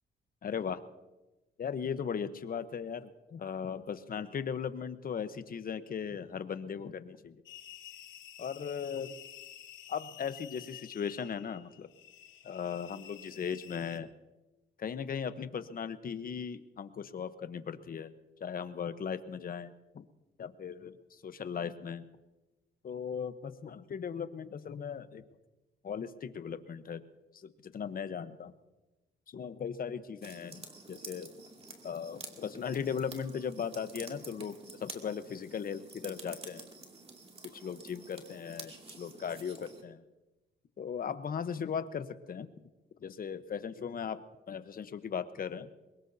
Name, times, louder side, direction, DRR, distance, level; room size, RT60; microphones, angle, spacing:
voice 1, 0.4-0.8 1.6-7.4 8.4-9.2 9.9-11.9 12.4-14.1 14.8-18.1 18.4-20.0 20.4-20.9 21.2-22.0 22.8-25.2 25.8-27.0 27.3-28.5 29.3-31.3 31.8-36.7 37.4-40.0 40.8-42.5 43.0-44.2 44.5-45.7, left 7 dB, 45° left, 11 dB, 1.1 m, -38 dB
sound 1, 7.5-14.0, left 12 dB, 75° left, 0.9 m, -51 dB
sound 2, 30.2-39.8, right 3 dB, 30° right, 2.5 m, -49 dB
23.0 x 21.0 x 2.8 m, 1.1 s
cardioid pair, 90°, 20 cm